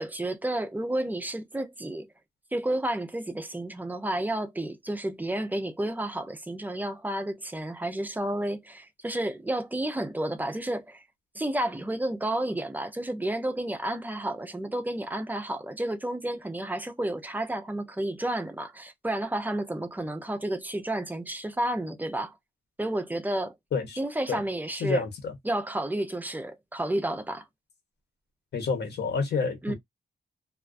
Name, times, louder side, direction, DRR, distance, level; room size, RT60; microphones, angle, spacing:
voice 1, 0.0-2.1 2.5-11.0 11.3-22.3 22.8-23.5 24.0-25.0 25.5-27.4 29.6-29.7, right 1 dB, 10° right, 0.4 m, -31 dB
voice 2, 24.8-25.3 28.5-29.7, left 5 dB, 75° left, 0.9 m, -28 dB
2.3 x 2.2 x 2.3 m
wide cardioid pair, 155°, 17 cm